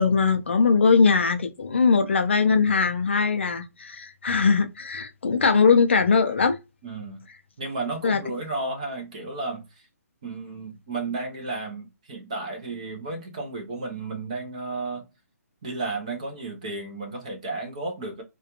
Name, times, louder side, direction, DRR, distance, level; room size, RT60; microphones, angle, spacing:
voice 1, 0.0-6.6 8.0-8.2, left 5 dB, 40° left, 0.3 m, -20 dB
voice 2, 6.8-7.2 7.6-9.6 10.2-15.1 15.6-18.2, right 3 dB, 25° right, 0.5 m, -33 dB
2.3 x 2.2 x 2.8 m
hypercardioid pair, 175°, 9 cm